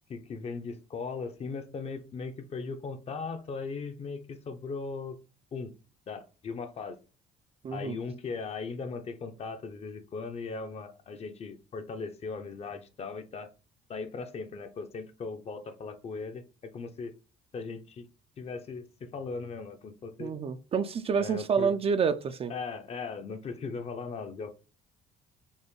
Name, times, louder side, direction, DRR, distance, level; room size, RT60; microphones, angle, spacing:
voice 1, 0.1-5.2 5.5-5.7 6.1-7.0 7.7-13.5 13.9-17.1 17.5-18.0 18.4-20.3 21.2-21.7 22.5-24.5, left 4 dB, 40° left, 0.6 m, -38 dB
voice 2, 7.6-8.0 20.2-22.5, right 6 dB, 35° right, 0.4 m, -28 dB
5.3 x 2.1 x 3.1 m
cardioid pair, 110°, 17 cm